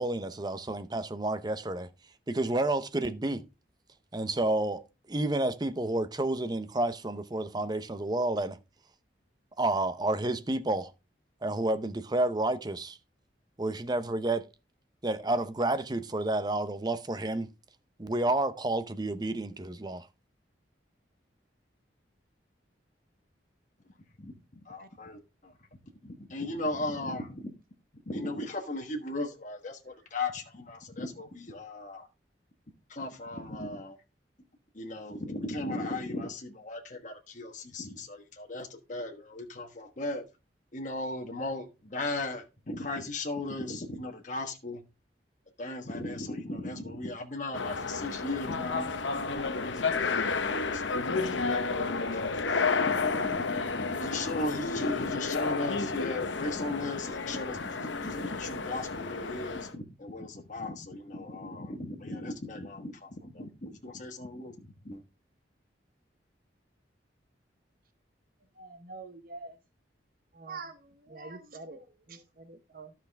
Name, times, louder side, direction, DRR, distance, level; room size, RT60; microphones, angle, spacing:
voice 1, 0.0-1.9 2.3-3.4 4.1-8.6 9.6-10.9 11.4-13.0 13.6-14.5 15.0-17.5 18.0-20.1, right 2 dB, 20° right, 0.7 m, -30 dB
voice 2, 24.6-25.5 26.0-27.5 28.1-32.1 32.9-34.0 34.7-40.2 40.7-44.8 45.6-48.9 49.2-65.0, left 2 dB, 45° left, 1.4 m, -37 dB
sound 1, 47.5-59.7, left 4 dB, 85° left, 0.9 m, -31 dB
voice 3, 68.6-69.6 70.3-72.9, right 3 dB, 50° right, 0.9 m, -45 dB
12.5 x 5.8 x 3.4 m
head